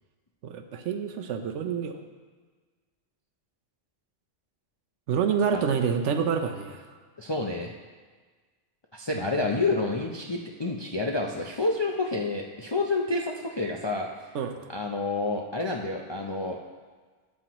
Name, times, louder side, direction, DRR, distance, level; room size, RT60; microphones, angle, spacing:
voice 1, 0.4-2.0 5.1-6.9 14.3-14.6, right 7 dB, 75° right, 7 dB, 1.0 m, -27 dB
voice 2, 7.2-7.7 8.9-14.1 14.7-16.6, left 3 dB, 40° left, 0 dB, 0.3 m, -29 dB
12.5 x 7.6 x 3.0 m, 1.4 s
omnidirectional pair, 1.3 m